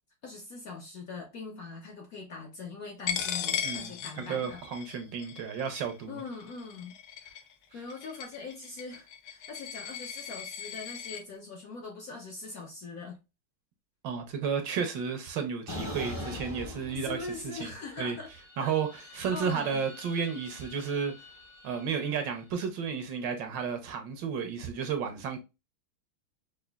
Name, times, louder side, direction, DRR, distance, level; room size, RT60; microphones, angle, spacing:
voice 1, 0.2-4.6 6.1-6.9 7.2-7.4 7.7-13.2 16.9-18.3 18.6-19.8, left 4 dB, 60° left, 1.0 m, -42 dB
Coin (dropping), 3.1-11.2, left 9 dB, 75° left, 1.4 m, -37 dB
voice 2, 3.6-6.2 14.0-17.3 17.5-17.7 18.0-18.2 18.6-18.9 19.1-21.1 21.6-25.4, right 6 dB, 70° right, 1.3 m, -32 dB
sound 1, 15.7-17.6 18.0-22.3, left 1 dB, 20° left, 0.4 m, -43 dB
4.9 x 2.4 x 2.2 m
omnidirectional pair, 2.2 m